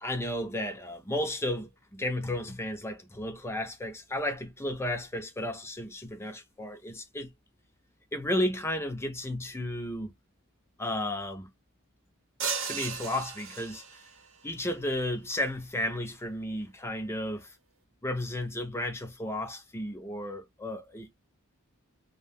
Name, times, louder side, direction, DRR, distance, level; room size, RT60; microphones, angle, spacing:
voice 1, 0.0-7.3 8.1-10.1 10.8-11.5 12.7-14.0 14.4-17.6 18.0-21.1, left 1 dB, 10° left, 0.5 m, -33 dB
sound 1, 12.4-14.2, right 6 dB, 65° right, 0.8 m, -35 dB
2.2 x 2.1 x 3.3 m
head